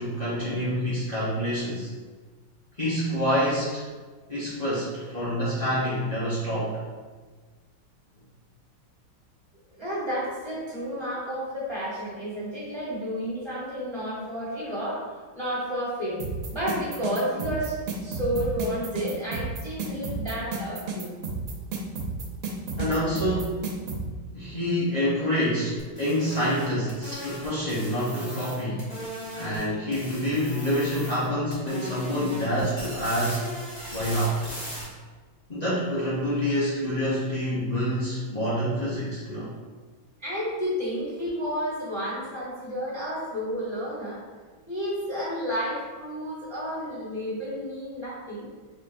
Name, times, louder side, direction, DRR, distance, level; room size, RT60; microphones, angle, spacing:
voice 1, 0.0-1.9 2.8-3.8 4.3-6.8 22.8-23.7 24.3-28.9 29.4-33.5 33.9-34.4 35.5-39.5, equal, 85° left, -10 dB, 0.3 m, -27 dB
voice 2, 9.8-15.1 15.3-16.2 16.5-21.1 40.2-44.2 44.7-48.5, equal, 15° right, -10 dB, 1.2 m, -31 dB
sound 1, 16.2-24.0, right 4 dB, 80° right, 1.6 m, -31 dB
sound 2, 25.8-29.6 29.9-31.3 31.5-34.8, left 1 dB, 30° left, 0.9 m, -38 dB
5.1 x 3.7 x 2.5 m, 1.4 s
omnidirectional pair, 2.3 m